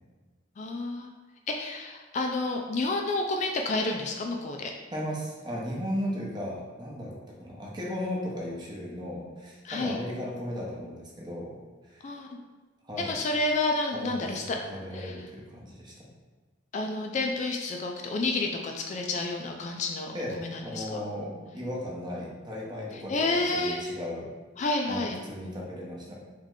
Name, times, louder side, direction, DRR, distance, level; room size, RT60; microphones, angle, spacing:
voice 1, 0.6-1.1 1.5-4.7 9.6-10.0 12.0-12.3 13.0-14.6 14.9-15.1 16.7-21.0 23.1-23.8 24.6-25.2, left 2 dB, 40° left, 2 dB, 0.3 m, -30 dB
voice 2, 4.9-11.6 11.8-12.2 12.8-13.2 13.9-15.9 20.1-24.3 24.9-26.2, equal, 25° right, -3 dB, 0.8 m, -36 dB
3.6 x 3.2 x 3.6 m, 1.3 s
head